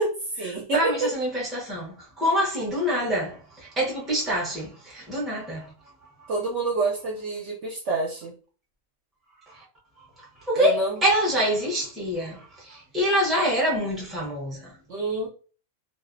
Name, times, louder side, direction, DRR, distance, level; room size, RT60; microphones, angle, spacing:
voice 1, 0.0-1.1 6.3-8.3 10.6-11.0 14.9-15.3, right 2 dB, 65° right, 0.8 m, -27 dB
voice 2, 0.7-5.7 9.5-9.6 10.4-14.7, equal, ahead, 0.4 m, -26 dB
2.5 x 2.0 x 2.4 m
omnidirectional pair, 1.5 m